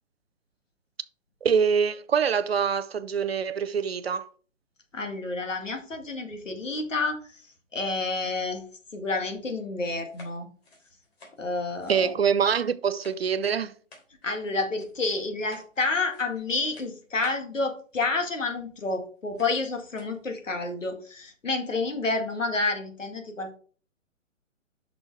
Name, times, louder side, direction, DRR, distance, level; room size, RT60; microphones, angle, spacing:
voice 1, 1.4-4.3 11.9-13.7, right 7 dB, 50° right, 0.6 m, -25 dB
voice 2, 4.9-7.2 7.7-8.6 8.9-10.5 11.4-12.1 14.2-23.6, left 3 dB, 70° left, 2.1 m, -29 dB
sound 1, 10.1-12.7 13.0-13.6 13.9-14.4 14.8-15.1 15.5-15.8 16.1-16.5 16.7-17.5 18.6-18.7 19.4-19.6 19.9-20.2, left 2 dB, 50° left, 3.5 m, -52 dB
7.4 x 6.2 x 4.6 m
figure-of-eight pair, 130°, 39 cm